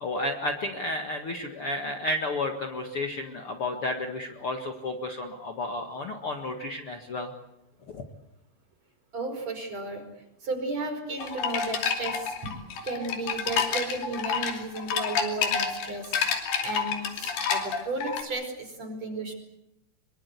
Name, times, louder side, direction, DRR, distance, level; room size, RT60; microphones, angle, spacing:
voice 1, 0.0-7.3 7.9-8.0, left 2 dB, 45° left, 3 dB, 2.0 m, -32 dB
voice 2, 9.1-10.0 10.4-12.5 12.8-19.3, right 2 dB, 45° right, 5 dB, 5.8 m, -34 dB
Bamboo Chimes A, 11.2-18.2, left 6 dB, 80° left, 4.8 m, -29 dB
24.5 x 23.5 x 8.3 m, 0.85 s
omnidirectional pair, 4.5 m